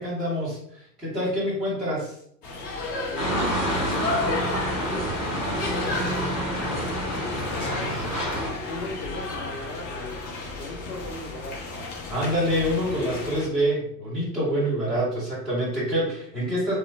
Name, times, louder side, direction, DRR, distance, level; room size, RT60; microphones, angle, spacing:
voice 1, 0.0-2.1 12.1-16.8, equal, ahead, -10 dB, 0.4 m, -26 dB
sound 1, 2.4-13.5, left 3 dB, 35° left, 0.9 m, -33 dB
voice 2, 3.1-4.2 4.8-7.9 8.7-11.7, left 1 dB, 80° left, 1 dB, 0.9 m, -38 dB
sound 2, 3.2-8.5, equal, 50° left, 1.4 m, -28 dB
2.9 x 2.0 x 2.5 m, 0.67 s
figure-of-eight pair, 90°, 49 cm